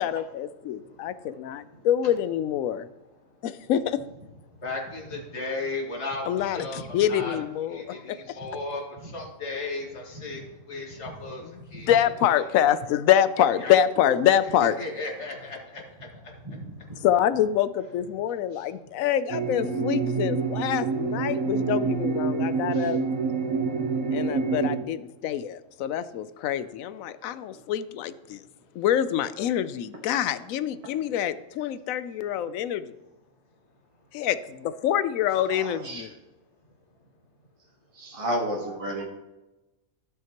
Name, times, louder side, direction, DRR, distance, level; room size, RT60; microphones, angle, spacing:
voice 1, 0.0-2.9 3.4-4.0 6.3-8.0 11.9-14.8 17.0-23.0 24.1-28.4 28.7-32.9 34.1-36.1, left 10 dB, 80° left, 14 dB, 1.0 m, -26 dB
voice 2, 0.6-1.9 3.2-3.5 4.5-7.4 7.7-12.0 12.5-12.6 13.6-13.7 14.6-16.5 16.8-16.9 18.5-18.7 21.6-21.7 22.7-23.0 23.7-23.9 28.3-28.8 33.6-34.3 36.9-37.0, left 3 dB, 55° left, -1 dB, 2.1 m, -37 dB
sound 1, 19.3-24.8, right 4 dB, 75° right, 1.4 m, -27 dB
voice 3, 35.5-36.2 37.9-39.0, equal, 25° right, -2 dB, 1.4 m, -32 dB
15.0 x 5.7 x 3.0 m, 1.0 s
omnidirectional pair, 1.4 m